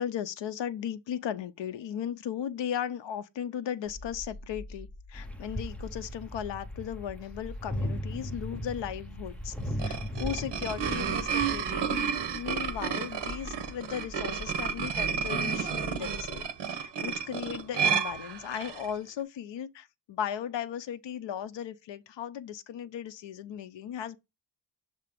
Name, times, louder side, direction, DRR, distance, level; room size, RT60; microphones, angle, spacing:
voice 1, 0.0-16.5 16.8-24.2, left 9 dB, 75° left, 0.6 m, -36 dB
sound 1, 3.8-16.4, left 2 dB, 35° left, 1.0 m, -45 dB
sound 2, 5.1-13.3, equal, 5° left, 0.7 m, -38 dB
sound 3, 9.6-18.9, right 7 dB, 65° right, 0.9 m, -31 dB
6.8 x 2.8 x 4.9 m
wide cardioid pair, 160°, 45 cm